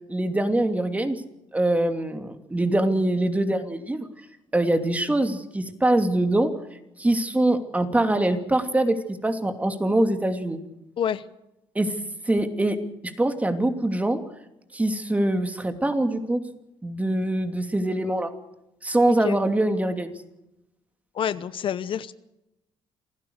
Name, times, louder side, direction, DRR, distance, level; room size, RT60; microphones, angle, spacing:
voice 1, 0.1-1.2 1.5-4.1 4.5-6.5 7.0-10.6 11.7-11.9 12.2-12.8 13.0-14.2 14.7-16.4 16.8-18.3 18.8-20.1, right 1 dB, 15° right, 7 dB, 2.8 m, -23 dB
voice 2, 21.1-22.1, left 9 dB, 55° left, 14 dB, 0.9 m, -27 dB
27.5 x 15.5 x 6.5 m, 0.89 s
cardioid pair, 95°, 10 cm